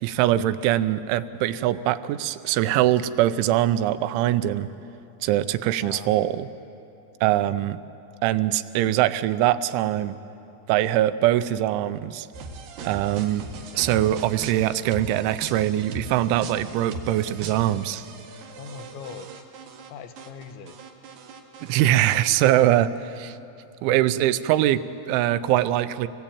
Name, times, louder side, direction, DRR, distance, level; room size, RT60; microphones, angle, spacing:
voice 1, 0.0-4.7 5.2-6.5 7.2-7.8 8.2-10.2 10.7-12.3 12.8-13.5 13.7-18.1 21.6-23.4 23.8-26.1, right 13 dB, 90° right, 13 dB, 3.1 m, -22 dB
voice 2, 5.8-6.1 18.6-19.4 19.9-20.8, left 7 dB, 80° left, 8 dB, 3.3 m, -40 dB
sound 1, 12.3-19.9 20.2-21.9, right 3 dB, 65° right, 3.5 m, -39 dB
25.0 x 19.5 x 8.7 m, 2.8 s
omnidirectional pair, 5.3 m